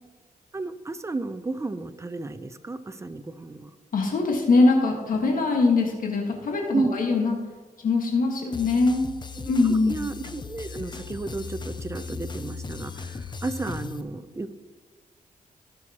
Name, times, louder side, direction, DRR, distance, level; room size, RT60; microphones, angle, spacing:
voice 1, 0.5-3.7 6.7-6.9 9.4-9.5 9.9-14.5, right 3 dB, 20° right, 11 dB, 0.6 m, -32 dB
voice 2, 3.9-7.4 7.8-9.0 9.5-10.0, left 3 dB, 65° left, 0 dB, 1.6 m, -22 dB
sound 1, 8.5-14.0, left 4 dB, 30° left, 0.6 m, -37 dB
16.5 x 6.3 x 3.0 m, 1.3 s
cardioid pair, 100°, 15 cm